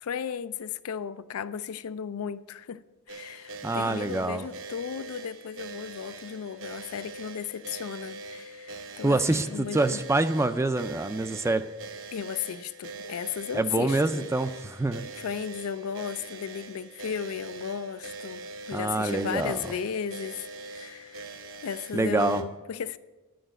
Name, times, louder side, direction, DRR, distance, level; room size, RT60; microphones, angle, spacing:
voice 1, 0.0-10.0 12.1-14.3 15.2-21.3 21.6-23.0, left 7 dB, 90° left, 0.4 m, -35 dB
sound 1, 3.1-22.4, right 3 dB, 65° right, 0.8 m, -43 dB
voice 2, 3.6-4.5 9.0-11.7 13.5-15.1 18.7-19.6 21.9-22.4, right 2 dB, 15° right, 0.4 m, -26 dB
10.5 x 5.0 x 7.6 m
head